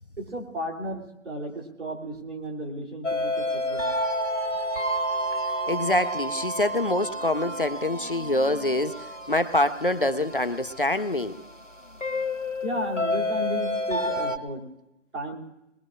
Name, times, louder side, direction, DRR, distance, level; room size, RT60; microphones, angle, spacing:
voice 1, 0.2-3.9 12.6-14.6 15.1-15.4, equal, 65° right, -1 dB, 3.4 m, -34 dB
sound 1, 3.0-14.4, equal, 75° left, 1.4 m, -30 dB
voice 2, 5.7-11.4, left 1 dB, 45° left, 10 dB, 0.4 m, -25 dB
21.5 x 21.0 x 2.5 m, 0.92 s
figure-of-eight pair, 170°, 38 cm